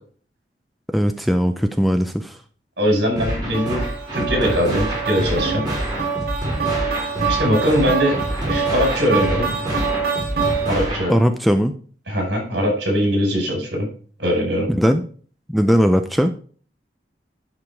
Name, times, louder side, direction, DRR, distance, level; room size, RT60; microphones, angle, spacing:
voice 1, 0.9-2.4 11.1-11.7 14.8-15.0 15.5-16.3, equal, ahead, 6 dB, 0.5 m, -18 dB
voice 2, 2.8-3.9 4.1-5.7 7.3-8.2 8.5-9.5 10.7-11.2 12.1-13.9 14.2-14.7, equal, 75° right, 1 dB, 5.3 m, -21 dB
sound 1, 3.2-11.2, right 1 dB, 25° right, 3.4 m, -27 dB
sound 2, 3.5-11.0, right 5 dB, 55° right, 2.4 m, -26 dB
11.0 x 5.1 x 4.7 m, 0.43 s
head